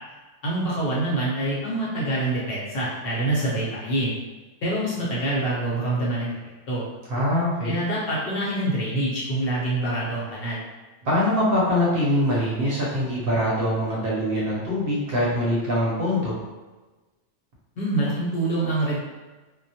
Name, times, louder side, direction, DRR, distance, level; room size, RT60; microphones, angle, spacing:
voice 1, 0.4-4.2 4.6-6.3 6.7-6.8 7.6-10.6 17.8-19.0, right 1 dB, 55° left, -7 dB, 0.9 m, -25 dB
voice 2, 7.1-7.8 11.0-16.4, left 1 dB, 60° right, -6 dB, 0.7 m, -23 dB
2.2 x 2.1 x 2.7 m, 1.2 s
omnidirectional pair, 1.2 m